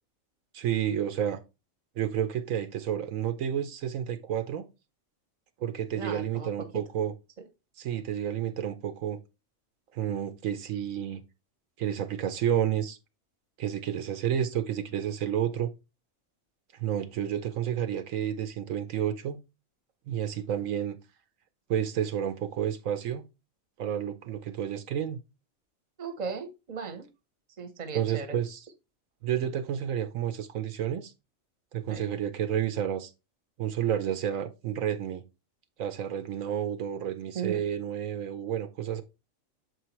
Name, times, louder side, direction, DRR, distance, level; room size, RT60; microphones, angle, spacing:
voice 1, 0.5-1.4 2.0-4.7 5.6-7.1 7.8-9.2 9.9-11.2 11.8-13.0 13.6-15.7 16.8-19.4 20.1-21.0 21.7-23.2 23.8-25.2 27.9-28.7 29.2-31.1 31.7-33.1 33.6-35.2 35.8-39.0, right 10 dB, 75° right, 1.0 m, -30 dB
voice 2, 5.9-6.5 26.0-27.0 27.6-28.4 31.9-32.0 37.3-37.6, right 5 dB, 35° right, 0.9 m, -36 dB
6.9 x 4.6 x 3.0 m
omnidirectional pair, 1.4 m